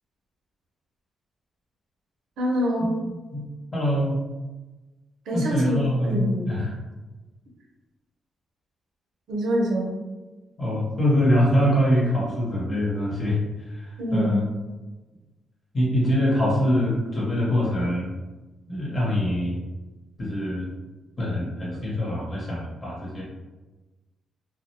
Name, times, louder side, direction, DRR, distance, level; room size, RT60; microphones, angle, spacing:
voice 1, 2.4-3.0 5.3-6.6 9.3-9.9 14.0-14.5, equal, 85° right, -1 dB, 0.6 m, -25 dB
voice 2, 3.7-4.2 5.3-6.7 10.6-13.4 13.7-14.4 15.7-18.1 18.7-19.6 20.2-20.7 21.2-23.2, equal, 35° left, -5 dB, 1.0 m, -24 dB
2.3 x 2.2 x 2.8 m, 1.2 s
cardioid pair, 90°, 0 cm